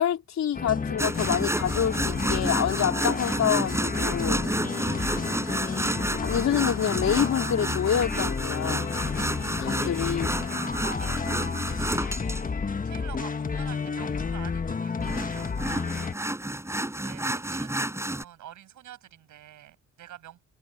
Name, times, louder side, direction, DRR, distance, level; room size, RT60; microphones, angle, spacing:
voice 1, 0.0-4.4 6.2-8.9 9.6-10.4, left 9 dB, 65° left, 3.9 m, -27 dB
sound 1, 0.5-16.1, left 5 dB, 30° left, 1.3 m, -31 dB
sound 2, 1.0-12.4 15.0-18.2, right 1 dB, 10° right, 5.6 m, -30 dB
voice 2, 4.3-5.6 6.4-7.1 9.1-10.1 10.5-10.9 11.3-16.2 16.6-20.4, right 12 dB, 75° right, 7.3 m, -49 dB
cardioid pair, 90°, 30 cm